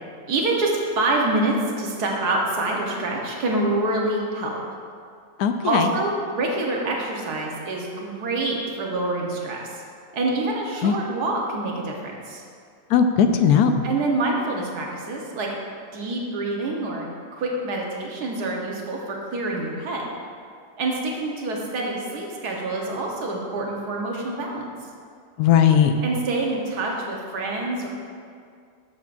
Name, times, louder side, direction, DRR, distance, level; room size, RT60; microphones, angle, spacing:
voice 1, 0.3-4.6 5.6-9.8 10.1-12.4 13.8-15.5 15.9-17.1 17.3-20.1 20.8-24.7 26.0-27.9, right 2 dB, 90° right, -1 dB, 1.7 m, -26 dB
voice 2, 5.4-5.9 10.8-11.0 12.9-13.8 25.4-25.9, left 7 dB, 80° left, 7 dB, 1.1 m, -18 dB
11.5 x 6.7 x 2.5 m, 2.2 s
omnidirectional pair, 1.6 m